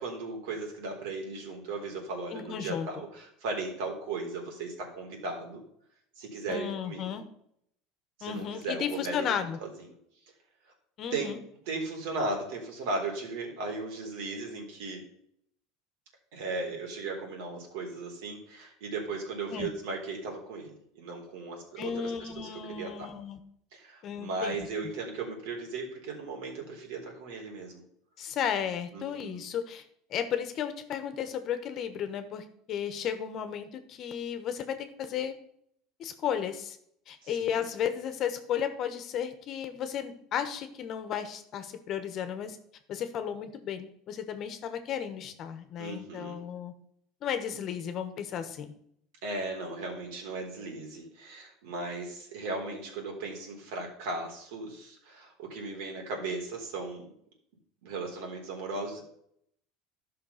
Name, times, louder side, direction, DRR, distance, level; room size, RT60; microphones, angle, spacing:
voice 1, 0.0-5.6 6.2-7.2 8.2-9.3 9.6-9.7 11.1-11.4 11.7-15.0 16.3-22.5 22.8-23.1 23.7-27.8 28.9-29.4 37.2-37.6 45.8-46.4 49.2-57.1 57.8-59.0, right 3 dB, 75° right, 1 dB, 3.7 m, -36 dB
voice 2, 2.3-2.9 6.5-7.2 8.2-9.6 11.0-11.4 19.5-19.7 21.8-23.4 24.0-24.7 28.2-29.8 30.1-35.4 36.0-36.8 37.1-42.6 42.9-46.7 47.2-48.7, left 8 dB, 45° left, 9 dB, 1.2 m, -34 dB
12.0 x 5.8 x 5.8 m, 0.70 s
supercardioid pair, 125°, 0 cm